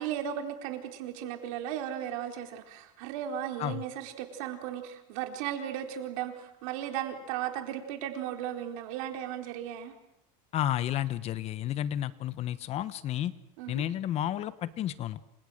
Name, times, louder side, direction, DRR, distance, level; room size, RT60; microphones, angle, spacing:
voice 1, 0.0-9.9 13.6-13.8, right 10 dB, 80° right, 4 dB, 4.3 m, -36 dB
voice 2, 10.5-13.3 13.7-15.2, left 12 dB, 40° left, 15 dB, 1.1 m, -31 dB
28.5 x 27.0 x 6.5 m, 0.81 s
cardioid pair, 155°, 17 cm